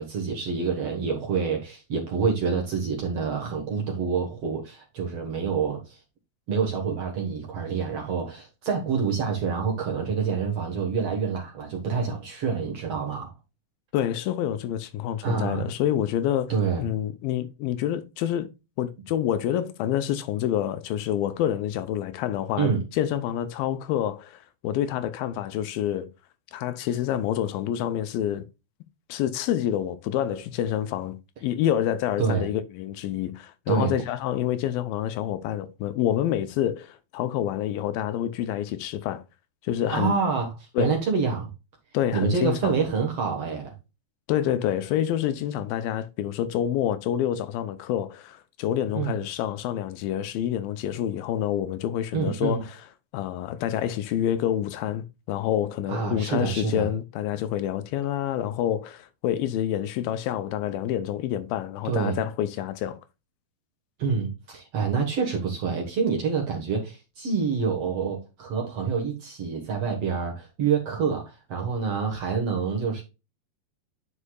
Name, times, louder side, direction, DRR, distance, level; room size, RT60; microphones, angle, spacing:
voice 1, 0.0-6.0 6.5-13.3 15.2-15.7 16.5-16.9 22.6-22.8 32.2-32.5 33.7-33.9 39.9-41.5 42.1-43.7 49.0-49.1 52.1-52.6 55.9-56.9 61.8-62.2 64.0-73.0, right 5 dB, 55° right, 1.9 m, -27 dB
voice 2, 13.9-18.5 18.8-26.1 26.5-28.4 29.1-31.2 31.4-39.2 39.6-40.1 40.8-40.9 41.9-42.7 44.3-52.8 53.1-63.0, left 11 dB, 80° left, 2.4 m, -27 dB
9.8 x 5.5 x 2.3 m
omnidirectional pair, 4.3 m